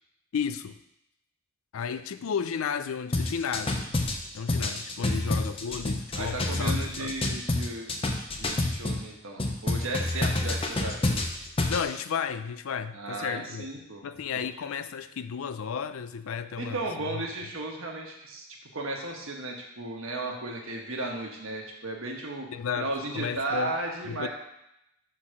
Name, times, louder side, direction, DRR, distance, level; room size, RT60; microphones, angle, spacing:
voice 1, 0.3-0.8 1.7-3.9 4.3-7.2 11.7-13.7 14.0-17.2 22.5-23.7 24.1-24.3, left 6 dB, 75° left, 12 dB, 0.4 m, -33 dB
sound 1, 3.1-9.0 9.4-11.8, left 2 dB, 25° left, 0.6 m, -28 dB
voice 2, 6.1-8.0 8.4-11.0 12.9-14.0 14.3-14.4 16.6-18.5 18.7-22.5 22.7-24.3, right 2 dB, 75° right, 0 dB, 1.3 m, -35 dB
6.1 x 3.9 x 6.2 m, 0.82 s
head